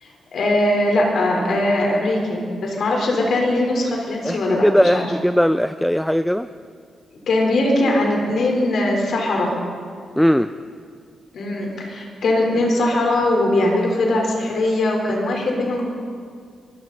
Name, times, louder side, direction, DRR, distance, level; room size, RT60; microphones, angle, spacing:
voice 1, 0.0-5.1 7.3-9.6 11.3-15.8, left 1 dB, 70° left, 0 dB, 3.7 m, -20 dB
voice 2, 4.2-6.5 10.2-10.5, equal, 5° left, 12 dB, 0.4 m, -18 dB
23.5 x 13.5 x 4.0 m, 2.1 s
cardioid pair, 65°, 0 cm